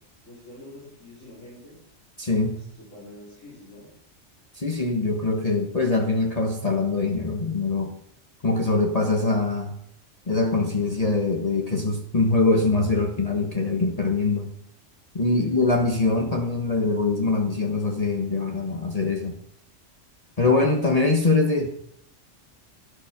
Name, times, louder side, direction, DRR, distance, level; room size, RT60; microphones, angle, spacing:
voice 1, 0.2-1.8 2.5-3.9 15.3-15.6, left 1 dB, 85° left, -7 dB, 4.7 m, -45 dB
voice 2, 2.2-2.6 4.5-7.9 8.4-9.7 10.3-14.5 15.1-19.3 20.4-21.7, left 3 dB, 30° left, 2 dB, 1.3 m, -23 dB
12.0 x 11.5 x 5.9 m, 0.67 s
omnidirectional pair, 1.2 m